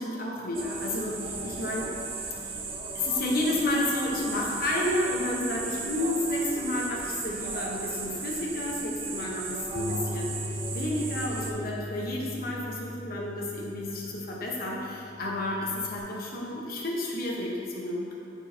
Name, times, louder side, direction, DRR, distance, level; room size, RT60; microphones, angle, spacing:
voice 1, 0.0-1.9 2.4-2.6 2.9-18.1, left 1 dB, 55° left, -3 dB, 1.0 m, -31 dB
sound 1, 0.5-11.5, right 4 dB, 35° right, 0.7 m, -36 dB
Bass guitar, 9.8-16.0, left 1 dB, 40° left, 0.5 m, -39 dB
13.5 x 4.6 x 2.7 m, 2.8 s
head